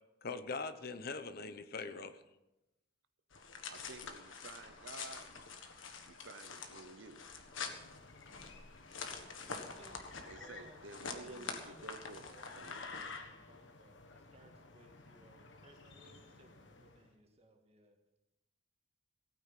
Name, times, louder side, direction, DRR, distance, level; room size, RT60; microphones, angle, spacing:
voice 1, 0.2-2.2, left 4 dB, 50° left, 11 dB, 0.8 m, -42 dB
sound 1, 3.3-13.2, left 5 dB, 85° left, 1.6 m, -47 dB
voice 2, 3.7-5.3 6.1-7.2 10.2-12.3 12.5-12.8, right 3 dB, 75° right, 10 dB, 0.9 m, -52 dB
sound 2, 7.3-17.1, left 4 dB, 70° left, 1.4 m, -54 dB
voice 3, 9.6-10.0 10.3-18.0, right 1 dB, 30° right, 3 dB, 2.0 m, -62 dB
17.0 x 9.3 x 5.8 m, 0.96 s
head